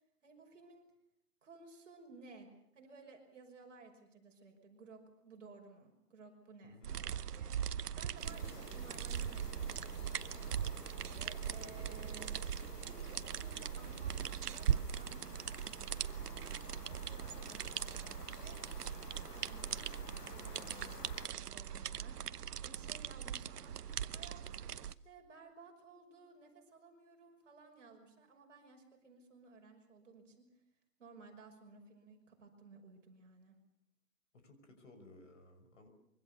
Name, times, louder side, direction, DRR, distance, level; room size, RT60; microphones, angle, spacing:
voice 1, 0.2-0.8 1.4-10.4 11.1-12.4 12.8-15.6 16.0-18.6 19.3-23.7 24.1-30.5 31.0-33.6, right 4 dB, 50° right, 3 dB, 5.8 m, -57 dB
voice 2, 6.6-7.0 20.5-21.1 34.3-35.9, left 2 dB, 50° left, 7 dB, 5.9 m, -58 dB
sound 1, 6.8-24.9, right 9 dB, 80° right, 1.0 m, -40 dB
sound 2, 8.2-21.3, left 7 dB, 85° left, 1.5 m, -54 dB
25.0 x 23.5 x 6.9 m, 0.78 s
hypercardioid pair, 180°, 47 cm